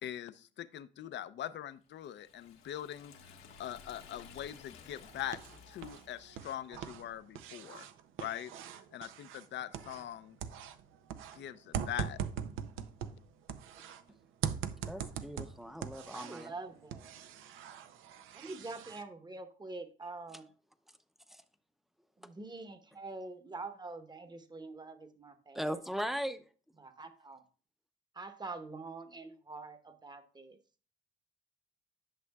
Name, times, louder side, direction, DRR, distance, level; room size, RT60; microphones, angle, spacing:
voice 1, 0.0-3.1 3.6-5.4 5.7-7.9 8.2-8.5 8.9-10.4 11.4-12.2, left 11 dB, 65° left, 14 dB, 0.5 m, -42 dB
Liquid, 2.0-6.6, left 6 dB, 90° left, 1.4 m, -55 dB
sound 1, 4.9-6.0 6.3-10.1 10.4-14.0 14.4-16.5 16.9-19.0, right 8 dB, 85° right, 0.6 m, -41 dB
voice 2, 14.9-16.5 21.3-21.4 25.5-26.4, equal, ahead, 10 dB, 0.6 m, -38 dB
voice 3, 16.1-17.3 18.3-20.5 22.2-25.8 26.8-27.4 28.1-30.6, right 3 dB, 20° right, 8 dB, 1.0 m, -45 dB
11.0 x 6.2 x 2.3 m, 0.39 s
cardioid pair, 90°, 20 cm